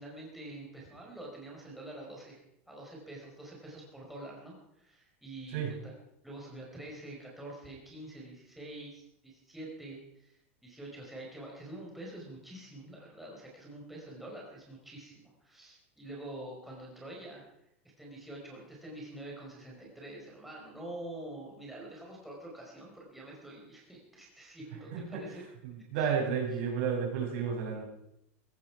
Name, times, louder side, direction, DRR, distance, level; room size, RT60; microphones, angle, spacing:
voice 1, 0.0-2.4 2.7-5.9 6.2-17.4 18.0-25.4 25.9-26.1, right 1 dB, ahead, -3 dB, 5.0 m, -46 dB
voice 2, 25.9-27.9, right 7 dB, 65° right, 0 dB, 6.6 m, -31 dB
17.5 x 16.0 x 4.9 m, 0.78 s
supercardioid pair, 135°, 7 cm